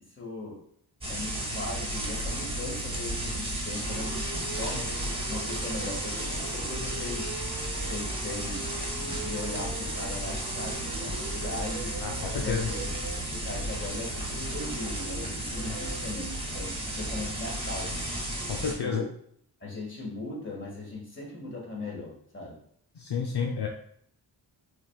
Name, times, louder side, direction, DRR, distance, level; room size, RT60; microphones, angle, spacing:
voice 1, 0.1-0.6 1.1-5.0 5.3-7.3 7.9-12.0 12.3-12.9 13.3-18.0 18.6-19.1 19.6-22.6, left 2 dB, 25° left, -3 dB, 1.9 m, -39 dB
sound 1, 1.0-18.7, right 1 dB, 10° right, 1.4 m, -33 dB
sound 2, 3.8-16.0, right 4 dB, 60° right, 1.0 m, -42 dB
voice 2, 12.0-12.7 15.6-15.8 18.5-19.0 23.0-23.7, left 6 dB, 65° left, 1 dB, 0.7 m, -30 dB
6.3 x 3.5 x 2.4 m, 0.65 s
wide cardioid pair, 105°, 43 cm